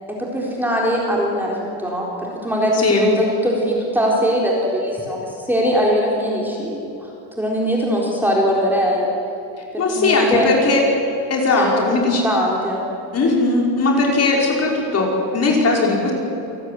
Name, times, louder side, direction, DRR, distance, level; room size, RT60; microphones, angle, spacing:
voice 1, 0.2-2.1 2.4-7.1 7.4-9.1 9.7-10.5 11.6-12.0 12.2-12.8, equal, 5° right, -3 dB, 4.1 m, -21 dB
voice 2, 9.8-10.8 11.3-12.2 13.1-16.1, left 3 dB, 35° left, -1 dB, 5.7 m, -18 dB
28.0 x 19.0 x 9.8 m, 2.7 s
cardioid pair, 165°, 42 cm